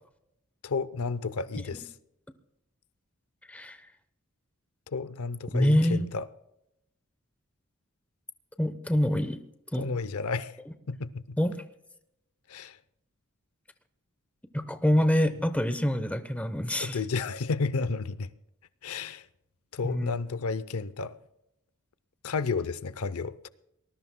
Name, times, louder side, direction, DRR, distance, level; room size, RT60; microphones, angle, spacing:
voice 1, 0.6-1.9 4.9-6.3 9.8-10.6 10.9-11.4 12.5-12.8 16.8-18.3 18.8-19.3 19.7-21.1 22.2-23.5, left 4 dB, 85° left, 0.6 m, -32 dB
voice 2, 5.5-6.1 8.6-9.4 9.7-9.9 11.4-11.6 14.5-17.0 19.8-20.2, equal, 5° left, 0.8 m, -26 dB
23.5 x 19.5 x 2.2 m
head